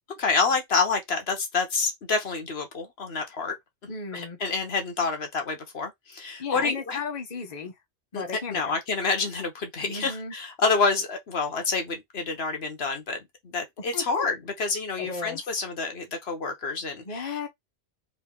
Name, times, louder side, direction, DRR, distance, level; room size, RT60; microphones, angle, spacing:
voice 1, 0.2-3.6 4.1-7.0 8.1-8.2 8.5-13.2 13.4-17.4, left 4 dB, 70° left, 1.3 m, -28 dB
voice 2, 3.9-4.4 6.4-7.7 8.1-8.8 9.8-10.3 13.9-14.3 15.0-15.6 17.0-17.5, left 5 dB, 40° left, 1.0 m, -35 dB
3.6 x 2.8 x 3.7 m
omnidirectional pair, 1.1 m